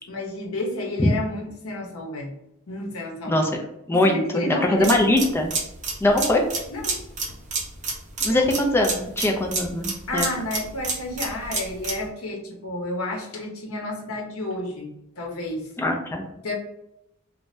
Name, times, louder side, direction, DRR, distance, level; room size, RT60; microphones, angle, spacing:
voice 1, 0.1-2.3 2.7-3.4 3.9-5.3 6.7-7.0 8.3-8.4 10.1-15.7 16.4-16.5, left 1 dB, 80° left, 0 dB, 0.8 m, -31 dB
voice 2, 3.9-5.5 6.0-6.4 8.2-10.3 15.8-16.3, left 1 dB, 10° left, 2 dB, 0.4 m, -21 dB
sound 1, 4.8-12.1, right 3 dB, 35° right, 0.7 m, -30 dB
2.6 x 2.2 x 3.1 m, 0.86 s
head